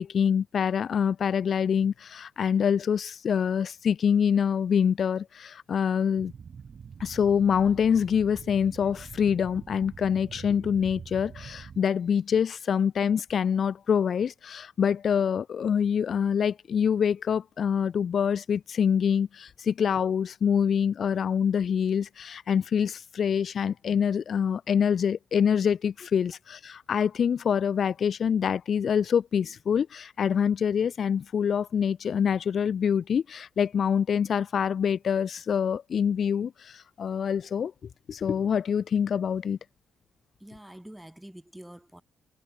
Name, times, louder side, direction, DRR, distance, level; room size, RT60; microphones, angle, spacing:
voice 1, 0.0-6.3 7.0-37.7 38.1-39.6, left 7 dB, 55° left, 0.4 m, -25 dB
sound 1, 6.2-11.8, right 6 dB, 45° right, 2.3 m, -44 dB
voice 2, 40.4-42.0, right 1 dB, 5° right, 1.4 m, -46 dB
cardioid pair, 90°, 0 cm